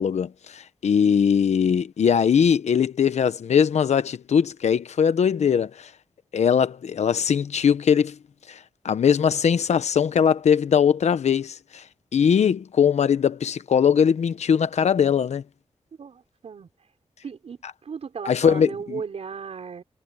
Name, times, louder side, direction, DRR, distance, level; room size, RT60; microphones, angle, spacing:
voice 1, 0.0-5.9 6.3-8.1 8.5-8.6 8.8-11.8 12.1-15.4 18.3-19.0, left 7 dB, 85° left, 0.9 m, -21 dB
voice 2, 1.0-1.5 16.0-16.7 17.2-19.8, right 6 dB, 70° right, 5.5 m, -36 dB
wide cardioid pair, 150°, 11 cm